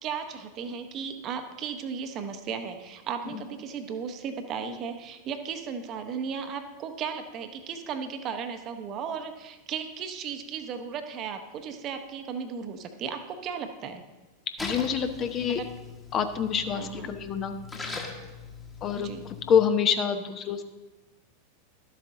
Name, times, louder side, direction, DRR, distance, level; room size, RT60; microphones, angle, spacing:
voice 1, 0.0-14.0 15.5-15.7 16.7-17.1 19.0-19.3, right 6 dB, 35° right, 7 dB, 0.9 m, -35 dB
voice 2, 14.6-15.6 16.1-17.5 18.8-20.6, left 7 dB, 30° left, 8 dB, 0.7 m, -26 dB
Splash splatter, 14.6-19.7, left 3 dB, 15° left, 1.3 m, -41 dB
12.5 x 7.6 x 3.7 m, 1.2 s
figure-of-eight pair, 90°, 0 cm